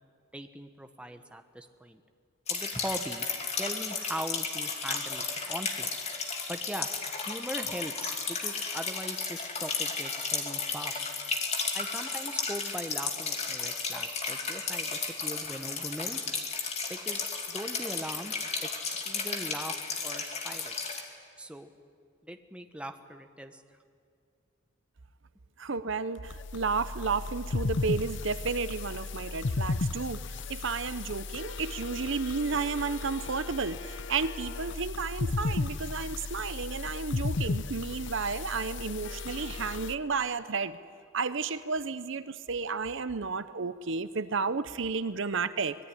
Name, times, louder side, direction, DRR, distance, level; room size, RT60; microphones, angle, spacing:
voice 1, 0.3-2.0 2.5-5.9 6.5-6.9 7.2-11.0 11.7-16.2 16.9-20.7 21.4-21.7 22.2-23.6, right 1 dB, 5° right, 6 dB, 1.1 m, -40 dB
sound 1, 2.5-21.0, left 4 dB, 30° left, 2.7 m, -34 dB
voice 2, 25.6-30.2 30.5-40.8 41.1-45.8, right 4 dB, 60° right, 13 dB, 0.7 m, -32 dB
sound 2, 26.2-40.0, left 3 dB, 55° left, 0.7 m, -35 dB
25.0 x 20.5 x 10.0 m, 2.2 s
head